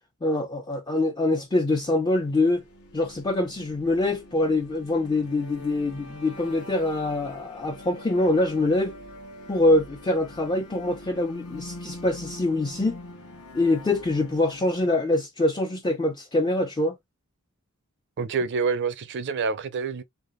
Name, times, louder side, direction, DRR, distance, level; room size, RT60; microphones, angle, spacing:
voice 1, 0.2-2.6 2.9-9.0 9.5-13.0 13.5-17.0, left 2 dB, 20° left, 0.3 m, -24 dB
sound 1, 2.0-15.0, left 1 dB, 85° left, 1.0 m, -44 dB
voice 2, 18.2-20.0, right 5 dB, 55° right, 0.4 m, -27 dB
3.3 x 2.4 x 2.4 m
head